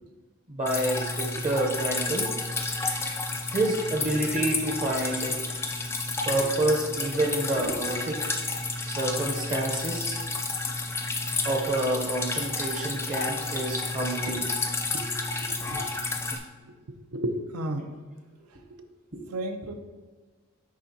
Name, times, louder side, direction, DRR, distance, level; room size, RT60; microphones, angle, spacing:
voice 1, 0.5-2.3 3.5-5.4 6.3-8.2 8.9-10.2 11.4-14.5 14.9-15.0 15.6-15.8 19.1-19.2, right 1 dB, 35° right, 0 dB, 0.7 m, -28 dB
Drip, 0.7-16.4, left 3 dB, 10° left, 0.4 m, -31 dB
voice 2, 17.1-17.9 19.3-19.7, right 1 dB, 90° right, 7 dB, 0.6 m, -31 dB
10.5 x 3.6 x 2.7 m, 1.4 s
head